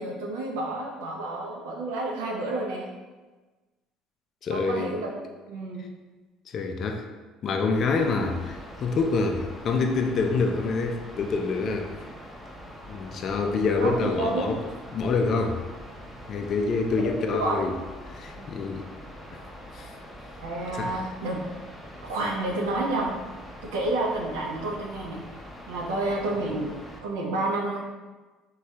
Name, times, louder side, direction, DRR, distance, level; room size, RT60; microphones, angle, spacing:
voice 1, 0.0-2.9 4.5-5.1 5.5-5.8 13.8-14.5 17.3-17.6 18.4-18.5 20.4-21.4 22.0-23.1 23.6-25.2 25.7-26.7 27.0-27.8, right 2 dB, 85° right, -1 dB, 0.5 m, -29 dB
voice 2, 4.4-5.0 6.5-7.0 7.4-11.9 12.9-14.6 14.9-15.6 16.3-17.7 18.1-18.9 19.7-19.9 20.7-21.0, left 4 dB, 50° left, 4 dB, 0.3 m, -26 dB
sound 1, 7.7-27.0, equal, ahead, 0.5 m, -44 dB
3.1 x 2.2 x 2.7 m, 1.3 s
supercardioid pair, 75°, 0 cm